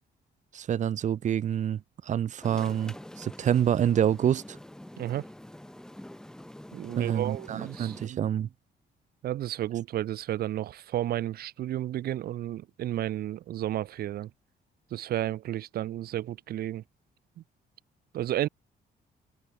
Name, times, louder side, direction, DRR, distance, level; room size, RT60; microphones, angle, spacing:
voice 1, 0.5-4.6 7.0-8.5, right 9 dB, 45° right, 1.2 m, -27 dB
sound 1, 2.4-8.1, left 1 dB, 5° left, 1.9 m, -46 dB
voice 2, 6.7-8.3 9.2-14.3 14.9-16.8 18.1-18.5, right 13 dB, 65° right, 1.0 m, -32 dB
cardioid pair, 175°, 17 cm